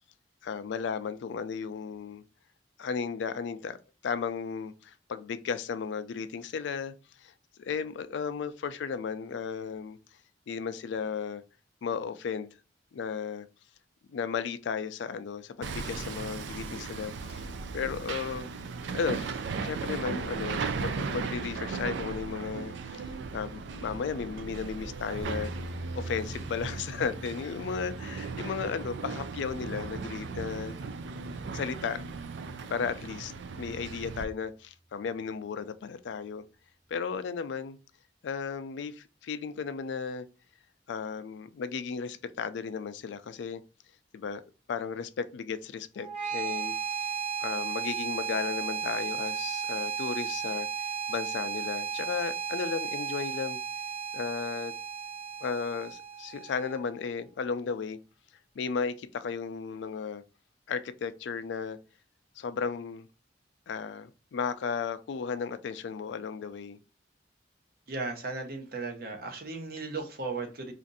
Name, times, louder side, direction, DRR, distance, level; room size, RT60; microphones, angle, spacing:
voice 1, 0.4-2.2 2.8-3.8 4.0-6.9 7.2-7.3 7.6-10.0 10.5-11.4 11.8-12.5 12.9-13.5 14.1-17.5 17.7-18.5 18.9-19.3 19.6-25.5 25.9-30.8 31.5-32.0 32.7-36.4 36.9-37.8 38.2-40.3 40.9-43.6 44.1-44.4 44.7-46.7 47.4-53.6 54.1-54.7 55.4-58.0 58.6-60.2 60.7-61.8 62.4-63.1 63.7-66.8, left 6 dB, 70° left, 0.3 m, -34 dB
Hammer, 15.6-34.2, right 4 dB, 75° right, 0.4 m, -37 dB
sound 1, 25.2-33.3, right 1 dB, 5° left, 0.4 m, -44 dB
sound 2, 46.0-57.0, right 7 dB, 40° right, 1.0 m, -34 dB
voice 2, 67.9-70.7, right 3 dB, 55° right, 0.8 m, -36 dB
2.5 x 2.5 x 3.9 m
head